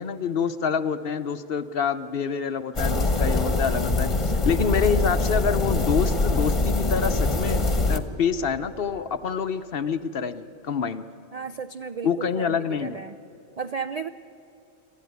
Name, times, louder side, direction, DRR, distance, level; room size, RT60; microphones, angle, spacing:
voice 1, 0.0-11.1 12.0-13.0, left 6 dB, 55° left, 10 dB, 0.8 m, -27 dB
sound 1, 2.8-8.0, left 2 dB, 25° left, 1.2 m, -23 dB
voice 2, 11.3-13.1 13.6-14.1, right 5 dB, 70° right, 10 dB, 0.3 m, -34 dB
28.5 x 12.0 x 9.4 m, 2.7 s
omnidirectional pair, 1.4 m